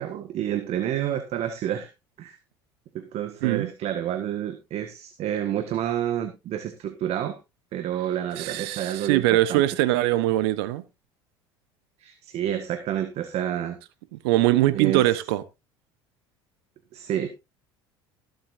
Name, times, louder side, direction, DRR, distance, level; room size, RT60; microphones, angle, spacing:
voice 1, 0.0-1.9 2.2-2.4 2.9-7.4 7.7-9.6 12.0-13.8 14.7-15.0 16.9-17.3, right 10 dB, 55° right, 1.6 m, -29 dB
voice 2, 3.4-3.7 8.4-10.8 14.1-15.4, right 15 dB, 75° right, 1.0 m, -22 dB
20.0 x 7.9 x 2.6 m
hypercardioid pair, 75°, 13 cm